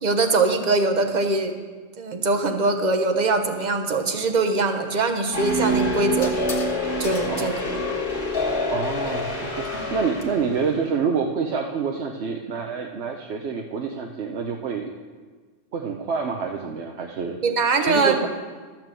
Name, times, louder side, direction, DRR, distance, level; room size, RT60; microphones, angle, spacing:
voice 1, 0.0-1.5 2.0-6.3 7.0-7.8 17.4-18.2, right 3 dB, 40° right, 5 dB, 1.0 m, -22 dB
sound 1, 4.9-5.1 6.2-6.7 7.0-7.5 9.6-10.2, left 2 dB, 85° left, 1.6 m, -38 dB
sound 2, 5.3-10.6, left 1 dB, 50° left, 1.7 m, -26 dB
voice 2, 8.7-14.9 15.7-17.4 17.8-18.3, right 5 dB, 75° right, 2 dB, 1.0 m, -27 dB
12.5 x 6.0 x 7.6 m, 1.4 s
omnidirectional pair, 1.2 m